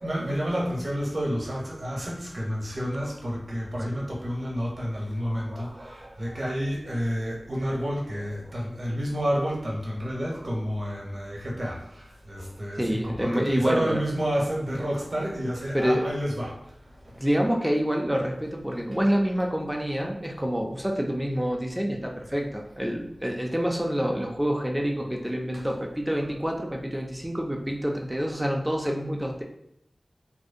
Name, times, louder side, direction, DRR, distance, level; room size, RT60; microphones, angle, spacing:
voice 1, 0.0-16.6 17.0-17.2 24.0-24.1 25.5-25.7 26.1-26.3, equal, 55° right, -3 dB, 0.7 m, -30 dB
voice 2, 12.8-14.0 15.7-16.1 17.2-29.4, equal, 10° right, 1 dB, 0.4 m, -27 dB
2.6 x 2.1 x 2.4 m, 0.77 s
wide cardioid pair, 60°, 0 cm